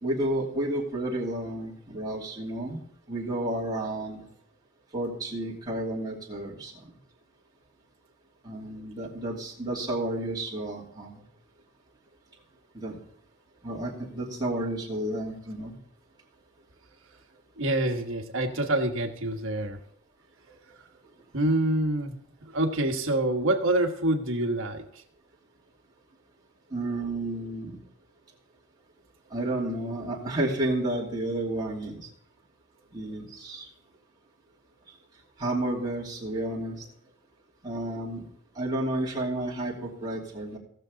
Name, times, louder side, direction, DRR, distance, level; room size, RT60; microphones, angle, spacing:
voice 1, 0.0-2.8 3.1-4.2 4.9-6.7 8.4-11.2 12.7-13.0 13.6-15.8 20.5-20.6 26.7-27.8 29.3-32.0 32.9-33.6 35.4-36.9 37.6-38.3 38.5-40.6, right 1 dB, 20° right, -6 dB, 2.7 m, -31 dB
voice 2, 17.6-19.8 21.3-24.8, right 1 dB, 60° right, 3 dB, 1.4 m, -26 dB
18.0 x 6.8 x 3.9 m, 0.68 s
head